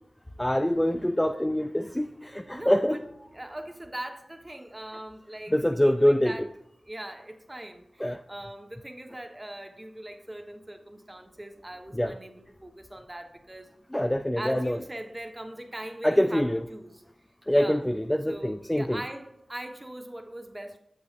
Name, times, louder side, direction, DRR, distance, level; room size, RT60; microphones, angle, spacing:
voice 1, 0.4-3.0 5.5-6.5 8.0-8.2 11.9-12.2 13.9-14.8 16.0-16.7 17.5-19.0, equal, 10° left, 0.4 m, -25 dB
voice 2, 2.3-3.0 3.3-5.6 5.8-6.5 6.8-13.7 14.4-17.0 17.5-17.8 18.3-20.8, right 1 dB, 20° right, 1.1 m, -41 dB
8.2 x 6.9 x 2.5 m
cardioid pair, 45°, 0 cm